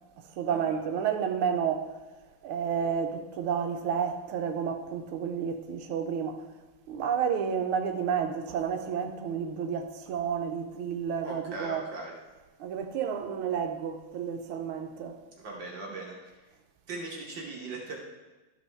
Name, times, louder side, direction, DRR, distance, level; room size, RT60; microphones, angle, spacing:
voice 1, 0.2-1.9 2.4-6.5 6.9-11.8 12.6-15.2, right 7 dB, 80° right, 1.5 m, -31 dB
voice 2, 11.2-12.1 15.4-16.5 16.9-18.0, right 2 dB, 60° right, 1.7 m, -39 dB
12.5 x 5.2 x 3.3 m
omnidirectional pair, 2.4 m